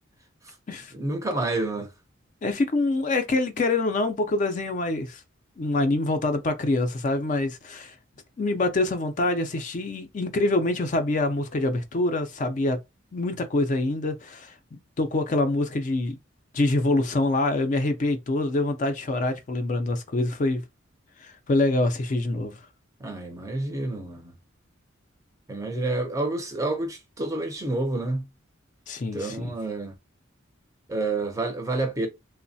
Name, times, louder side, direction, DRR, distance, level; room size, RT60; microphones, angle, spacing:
voice 1, 0.9-1.9 23.0-24.3 25.5-28.3 29.1-29.9 30.9-32.1, right 2 dB, 15° right, 0.5 m, -29 dB
voice 2, 2.4-5.2 5.6-7.9 8.4-12.8 13.1-16.2 16.5-20.6 21.2-22.6 28.9-29.5, left 2 dB, 40° left, 0.4 m, -25 dB
3.0 x 2.0 x 2.6 m
head